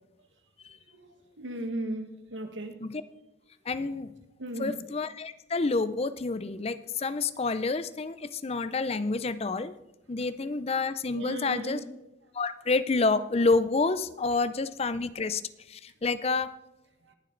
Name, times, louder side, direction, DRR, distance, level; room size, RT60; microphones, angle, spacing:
voice 1, 0.9-2.8 3.8-3.9 4.4-4.8 11.1-11.9 15.1-15.2 17.0-17.2, right 1 dB, 80° right, 7 dB, 1.6 m, -37 dB
voice 2, 3.7-4.1 4.6-9.7 10.1-11.8 12.3-15.4 15.7-16.5, left 3 dB, 35° left, 14 dB, 0.5 m, -28 dB
20.5 x 7.5 x 3.9 m, 0.92 s
head